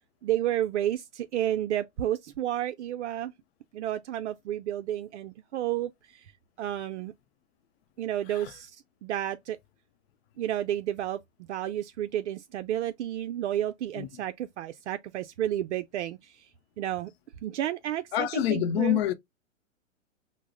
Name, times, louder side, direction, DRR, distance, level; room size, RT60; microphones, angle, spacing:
voice 1, 0.2-3.3 3.7-5.9 6.6-7.1 8.0-8.7 9.0-9.6 10.4-11.2 11.5-16.2 16.8-17.1 17.4-19.0, right 12 dB, 65° right, 0.5 m, -31 dB
voice 2, 18.1-19.1, left 11 dB, 50° left, 0.6 m, -27 dB
4.7 x 2.0 x 2.3 m
hypercardioid pair, 115°, 39 cm